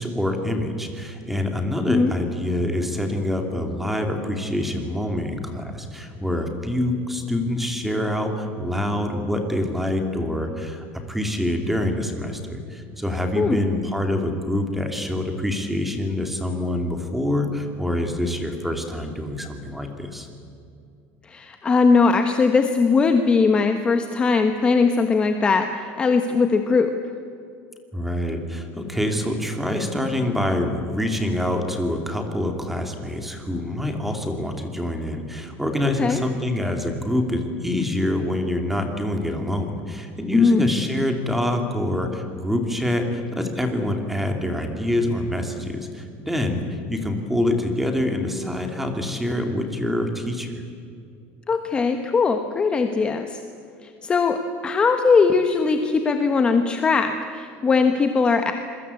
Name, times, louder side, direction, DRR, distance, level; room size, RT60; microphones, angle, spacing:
voice 1, 0.0-20.3 27.9-50.5, left 1 dB, 5° right, 4 dB, 2.6 m, -26 dB
voice 2, 21.2-26.9 36.0-36.2 40.3-40.8 51.5-53.4 53.8-58.5, left 4 dB, 15° left, 6 dB, 1.1 m, -20 dB
27.0 x 22.0 x 8.4 m, 2.5 s
cardioid pair, 170°, 6 cm